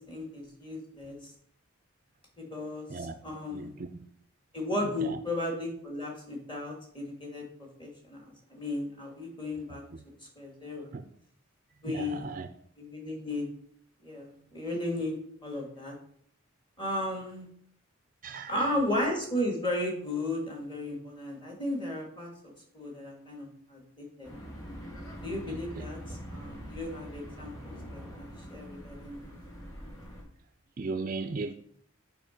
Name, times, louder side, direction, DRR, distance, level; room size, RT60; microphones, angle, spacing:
voice 1, 0.1-1.3 2.4-3.7 4.5-9.8 10.4-11.0 11.8-12.3 12.8-13.5 14.0-15.2 15.4-16.0 16.8-17.5 18.5-24.3 25.2-29.3, left 1 dB, 20° left, 2.0 m, -35 dB
voice 2, 3.5-4.0 5.0-5.2 10.9-11.0 11.9-12.5 18.2-18.5 25.5-25.9 30.8-31.5, right 3 dB, 40° right, 0.4 m, -36 dB
sound 1, 24.2-30.2, equal, 90° left, 3.7 m, -44 dB
7.6 x 5.0 x 5.1 m
head